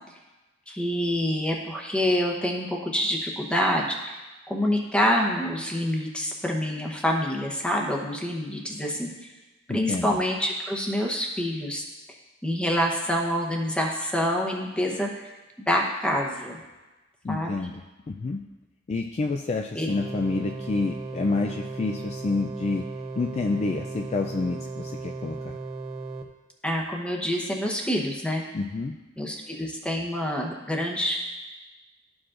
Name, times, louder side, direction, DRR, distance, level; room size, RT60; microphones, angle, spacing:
voice 1, 0.7-4.2 4.5-9.1 9.7-11.8 12.4-15.3 15.6-16.6 17.3-17.6 19.7-19.9 26.6-28.4 29.2-31.2, equal, 5° left, 0 dB, 0.8 m, -26 dB
voice 2, 9.7-10.2 17.2-18.4 18.9-22.9 23.2-25.6 28.5-29.0, left 3 dB, 35° left, 2 dB, 0.3 m, -28 dB
sound 1, 19.9-26.2, right 3 dB, 30° right, 0.6 m, -36 dB
13.0 x 4.8 x 2.5 m, 1.1 s
head